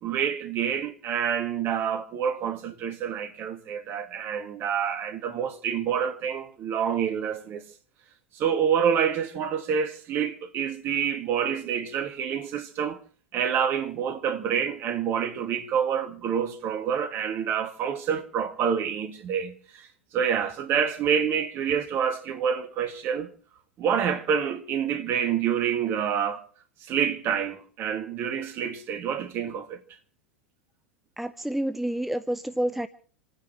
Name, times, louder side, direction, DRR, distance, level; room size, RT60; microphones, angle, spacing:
voice 1, 0.0-7.6 8.3-13.0 13.3-19.9 20.1-23.3 23.8-26.4 26.8-29.8, right 8 dB, 40° right, 2.2 m, -27 dB
voice 2, 31.2-32.9, right 1 dB, 5° right, 0.7 m, -28 dB
27.5 x 9.8 x 4.7 m
figure-of-eight pair, 85°, 6 cm